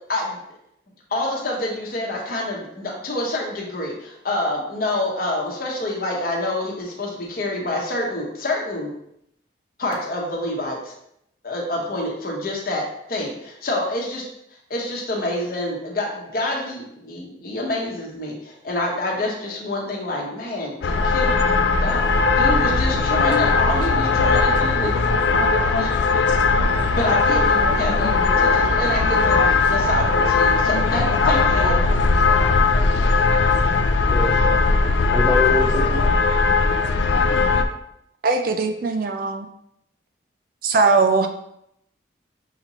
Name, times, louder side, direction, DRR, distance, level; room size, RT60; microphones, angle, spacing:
voice 1, 1.1-8.9 9.8-10.9 11.4-14.2 14.7-21.4 21.8-24.9 25.8-26.3 26.9-31.8, left 1 dB, 50° left, -1 dB, 0.9 m, -27 dB
sound 1, 20.8-37.7, left 4 dB, 75° left, 0.4 m, -19 dB
voice 2, 34.1-36.1, left 1 dB, 5° left, -2 dB, 0.6 m, -26 dB
voice 3, 38.2-39.5 40.6-41.3, right 4 dB, 50° right, 6 dB, 0.3 m, -20 dB
5.8 x 2.7 x 2.9 m, 0.76 s
head